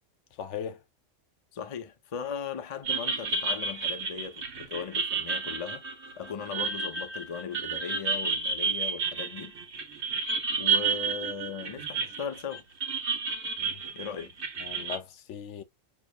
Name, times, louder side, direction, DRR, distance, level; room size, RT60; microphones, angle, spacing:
voice 1, 0.3-0.8 13.6-13.8 14.6-15.6, left 8 dB, 70° left, 0.9 m, -38 dB
voice 2, 1.5-5.8 6.2-9.6 10.5-12.6 13.9-14.3, left 7 dB, 35° left, 0.6 m, -38 dB
sound 1, 2.8-15.0, right 5 dB, 65° right, 1.5 m, -31 dB
6.8 x 2.3 x 2.3 m
omnidirectional pair, 1.3 m